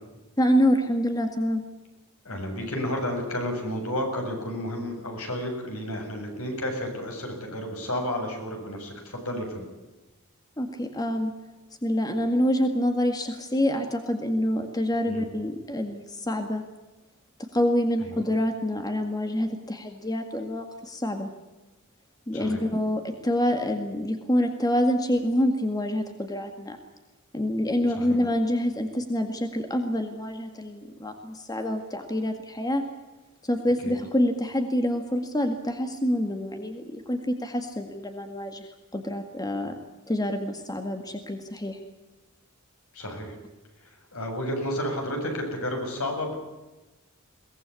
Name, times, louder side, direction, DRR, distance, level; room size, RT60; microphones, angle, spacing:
voice 1, 0.4-1.6 10.6-11.3 11.8-16.6 17.4-21.3 22.3-26.8 27.3-32.8 33.4-39.7 40.1-41.8, equal, 15° left, 6 dB, 1.9 m, -26 dB
voice 2, 2.2-9.7 15.0-15.3 18.0-18.2 22.3-22.6 28.0-28.2 33.8-33.9 42.9-43.3 44.1-46.4, left 1 dB, 70° left, 3 dB, 7.4 m, -31 dB
22.5 x 19.0 x 8.5 m, 1.1 s
head